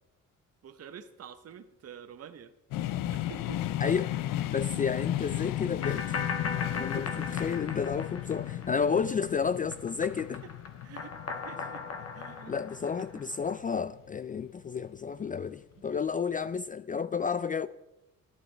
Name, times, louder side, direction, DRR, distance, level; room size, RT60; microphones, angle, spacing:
voice 1, 0.6-2.5 3.1-3.6 6.6-7.3 10.4-10.5 10.8-11.8 12.1-12.5, right 7 dB, 50° right, 1.0 m, -48 dB
sound 1, 2.7-14.5, left 13 dB, 75° left, 0.6 m, -35 dB
voice 2, 3.8-4.1 4.5-6.2 6.7-10.4 12.5-17.7, left 6 dB, 25° left, 0.3 m, -31 dB
sound 2, 5.8-9.3 9.6-13.5, left 5 dB, 45° left, 1.5 m, -38 dB
12.0 x 11.0 x 4.4 m
cardioid pair, 80°, 33 cm